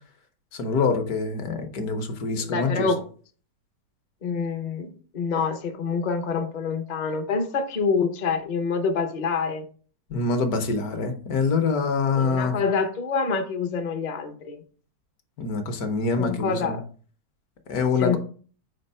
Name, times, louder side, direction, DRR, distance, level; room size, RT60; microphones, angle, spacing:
voice 1, 0.5-2.9 10.1-12.6 15.4-16.8 17.7-18.2, left 4 dB, 65° left, 7 dB, 1.3 m, -25 dB
voice 2, 2.4-3.0 4.2-9.7 12.2-14.6 16.2-16.8 18.0-18.2, left 5 dB, 50° left, 6 dB, 0.5 m, -26 dB
4.7 x 4.3 x 5.4 m, 0.43 s
omnidirectional pair, 1.9 m